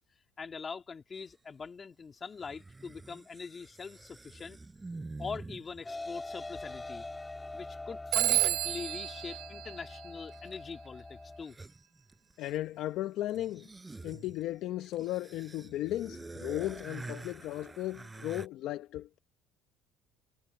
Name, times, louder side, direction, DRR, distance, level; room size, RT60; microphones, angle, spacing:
voice 1, 0.4-4.6 5.2-7.1 7.5-11.6, left 5 dB, 30° left, 2.7 m, -43 dB
sound 1, 1.1-1.3 2.4-5.9 9.3-9.4 10.3-10.7 11.0-11.1 11.3-12.8 13.3-18.5, right 3 dB, 15° right, 4.4 m, -47 dB
sound 2, 5.8-11.4, left 2 dB, 10° left, 2.5 m, -43 dB
Telephone, 8.1-10.6, right 16 dB, 70° right, 2.9 m, -31 dB
voice 2, 12.4-13.7 14.0-19.2, left 14 dB, 65° left, 0.8 m, -36 dB
cardioid pair, 115°, 0 cm